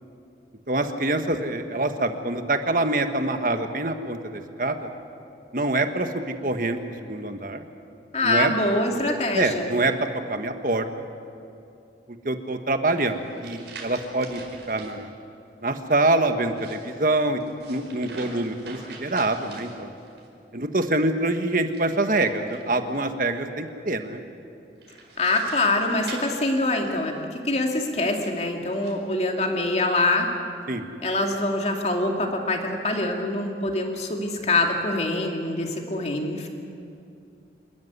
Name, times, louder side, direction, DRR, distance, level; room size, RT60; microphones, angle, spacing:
voice 1, 0.7-4.8 5.5-7.6 8.2-8.5 9.3-9.9 10.3-11.1 12.1-15.1 15.6-17.4 17.7-19.9 20.5-24.2 30.7-30.9, right 2 dB, 50° right, 7 dB, 1.5 m, -25 dB
voice 2, 8.1-9.7 25.2-30.3 31.0-36.5, left 2 dB, 35° left, 2 dB, 2.5 m, -24 dB
sound 1, 12.9-15.0 16.4-20.3 21.6-23.0 24.8-27.2 28.0-29.0, right 3 dB, 80° right, 4.7 m, -44 dB
27.5 x 13.5 x 9.7 m, 2.6 s
head